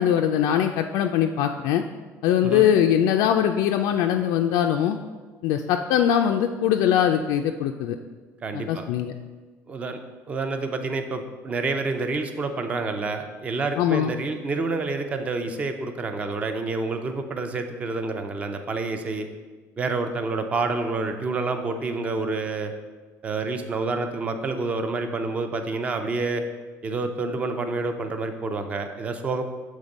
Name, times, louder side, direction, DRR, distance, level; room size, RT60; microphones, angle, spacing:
voice 1, 0.0-1.8 2.2-5.0 5.4-8.0 8.5-9.1 13.8-14.1, left 9 dB, 75° left, 4 dB, 0.3 m, -22 dB
voice 2, 8.4-8.8 9.7-10.0 10.3-19.3 19.8-22.7 23.2-26.4 26.8-29.4, right 3 dB, 20° right, 7 dB, 0.5 m, -28 dB
7.3 x 3.6 x 5.2 m, 1.4 s
cardioid pair, 170°, 6 cm